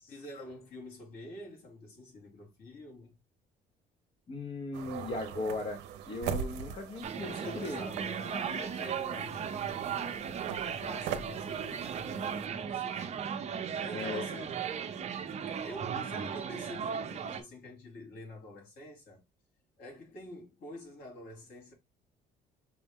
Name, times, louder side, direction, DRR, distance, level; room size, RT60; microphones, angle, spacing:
voice 1, 0.1-3.1 7.2-10.2 10.6-13.4 13.8-14.6 15.6-19.2 19.8-21.7, left 1 dB, 65° left, 2.5 m, -47 dB
voice 2, 4.3-7.8 13.9-14.3, left 3 dB, 30° left, 0.8 m, -38 dB
sound 1, 4.7-12.5, right 8 dB, 90° right, 0.6 m, -41 dB
sound 2, 7.0-17.4, right 7 dB, 40° right, 0.7 m, -36 dB
6.0 x 2.1 x 3.5 m
cardioid pair, 110°, 17 cm